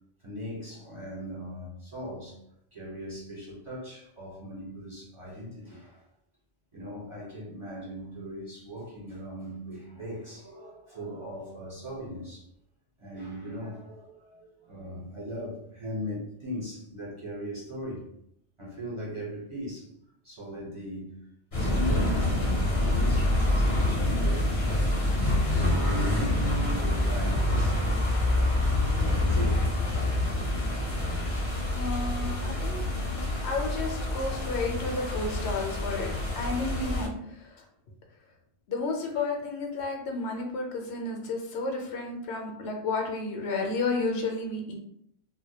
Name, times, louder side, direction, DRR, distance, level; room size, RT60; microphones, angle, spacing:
voice 1, 0.2-2.4 2.7-6.0 6.7-12.5 13.0-18.0 18.6-19.9 20.2-21.2 21.6-24.5 25.0-25.3 25.7-30.1 31.3-31.7 32.2-32.5, equal, 30° right, -7 dB, 0.8 m, -39 dB
sound 1, 21.5-37.1, left 1 dB, 35° left, 0.6 m, -26 dB
voice 2, 31.7-32.8 33.4-36.1 36.4-37.6 38.7-44.7, left 3 dB, 75° left, 1 dB, 0.8 m, -32 dB
2.1 x 2.1 x 2.8 m, 0.73 s
omnidirectional pair, 1.2 m